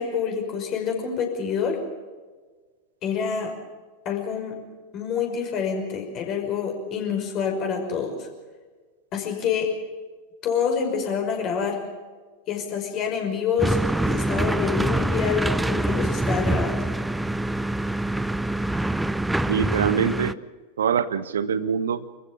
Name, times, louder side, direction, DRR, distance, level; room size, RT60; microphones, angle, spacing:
voice 1, 0.0-1.8 3.0-3.5 4.1-4.5 4.9-8.3 9.1-9.7 10.4-11.8 12.5-13.8 14.0-16.8, left 7 dB, 35° left, 2 dB, 5.7 m, -27 dB
sound 1, 13.6-20.3, right 1 dB, 5° right, 0.6 m, -25 dB
voice 2, 19.5-20.4 20.8-22.0, right 7 dB, 65° right, 15 dB, 0.9 m, -24 dB
26.0 x 15.0 x 7.1 m, 1.4 s
figure-of-eight pair, 90°, 0 cm